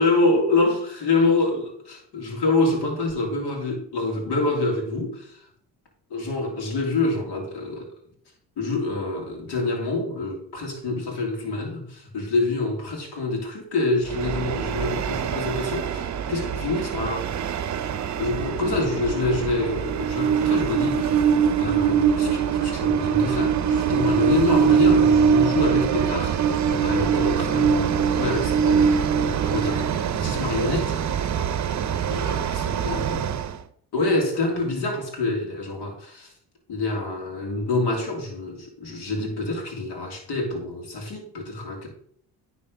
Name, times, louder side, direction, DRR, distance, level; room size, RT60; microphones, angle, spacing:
voice 1, 0.0-5.3 6.1-7.9 8.6-17.4 18.2-21.2 21.6-31.0 32.1-32.6 32.8-33.2 33.9-36.3 36.7-41.9, left 2 dB, 65° left, 3.2 m, -26 dB
Train, 14.1-33.6, right 7 dB, 40° right, 0.7 m, -23 dB
9.7 x 4.4 x 5.5 m
cardioid pair, 85°, 42 cm